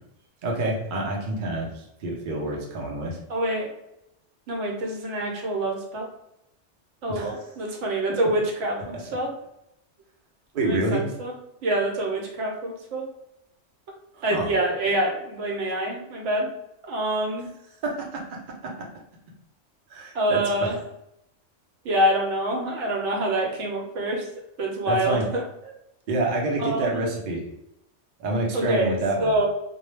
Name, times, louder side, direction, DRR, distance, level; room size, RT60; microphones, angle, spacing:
voice 1, 0.4-3.2 7.1-7.4 8.2-8.3 10.5-11.0 14.1-14.5 17.8-18.9 19.9-20.8 24.9-25.3 26.1-27.4 28.2-29.3, right 2 dB, 55° right, -1 dB, 0.7 m, -28 dB
voice 2, 3.3-3.7 4.5-6.1 7.0-9.3 10.6-11.3 11.6-13.1 14.2-16.5 16.9-17.5 20.1-20.8 21.8-24.3 24.6-25.7 26.6-27.0 28.5-29.5, right 1 dB, 80° right, 0 dB, 0.9 m, -26 dB
2.2 x 2.0 x 3.1 m, 0.82 s
omnidirectional pair, 1.2 m